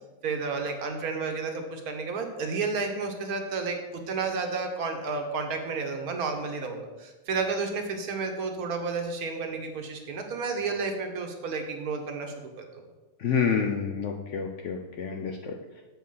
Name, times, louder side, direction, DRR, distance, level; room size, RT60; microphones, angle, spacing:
voice 1, 0.2-12.8, right 4 dB, 65° right, 4 dB, 1.3 m, -31 dB
voice 2, 13.2-15.6, left 6 dB, 65° left, 2 dB, 0.7 m, -28 dB
7.5 x 4.1 x 5.6 m, 1.2 s
omnidirectional pair, 1.7 m